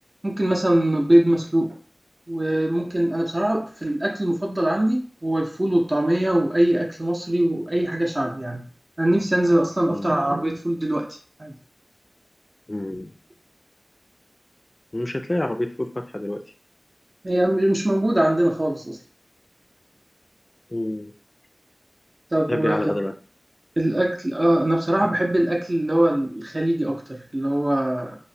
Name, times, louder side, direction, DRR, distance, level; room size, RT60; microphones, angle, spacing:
voice 1, 0.2-1.7 2.3-8.6 9.0-11.1 11.4-11.5 17.2-19.0 22.3-22.9 23.8-28.2, right 1 dB, 45° right, 1 dB, 0.6 m, -22 dB
voice 2, 12.7-13.1 14.9-16.4 20.7-21.1 22.5-23.1, left 1 dB, 40° left, 5 dB, 0.3 m, -27 dB
3.0 x 2.0 x 2.6 m, 0.40 s
wide cardioid pair, 50°, 0 cm